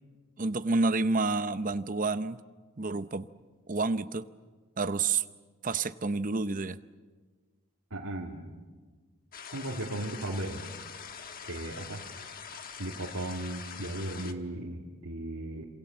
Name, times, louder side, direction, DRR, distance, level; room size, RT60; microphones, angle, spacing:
voice 1, 0.4-2.4 2.8-3.3 3.7-4.3 4.8-5.2 5.6-6.8, right 3 dB, 35° right, 13 dB, 0.7 m, -29 dB
voice 2, 7.9-8.4 9.5-10.6 11.4-12.0 12.8-15.6, right 1 dB, 90° right, -4 dB, 2.8 m, -36 dB
sound 1, 9.3-14.3, left 6 dB, 40° left, 1.3 m, -44 dB
27.0 x 27.0 x 7.3 m, 1.4 s
head